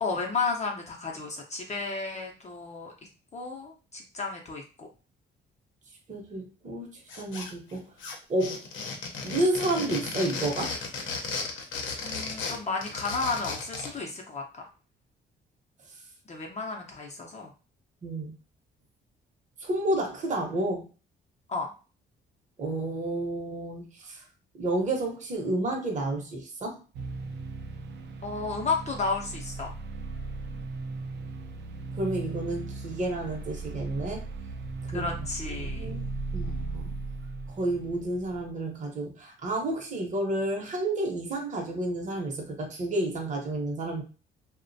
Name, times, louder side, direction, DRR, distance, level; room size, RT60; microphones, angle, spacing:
voice 1, 0.0-2.9 3.3-4.9 12.0-14.7 16.3-17.5 21.5-21.7 28.2-29.7 34.9-35.9, left 4 dB, 35° left, 1 dB, 0.6 m, -32 dB
voice 2, 6.1-7.8 8.3-8.6 9.2-10.7 18.0-18.3 19.6-20.9 22.6-24.2 24.6-26.8 32.0-34.2 34.9-35.1 35.5-37.0 37.5-44.0, right 1 dB, 40° right, 1 dB, 0.8 m, -30 dB
sound 1, 7.1-7.7 8.0-14.0, left 4 dB, 75° left, 0.7 m, -35 dB
sound 2, 26.9-38.5, right 3 dB, 60° right, 0.5 m, -37 dB
2.4 x 2.1 x 2.6 m, 0.34 s
cardioid pair, 90°, 20 cm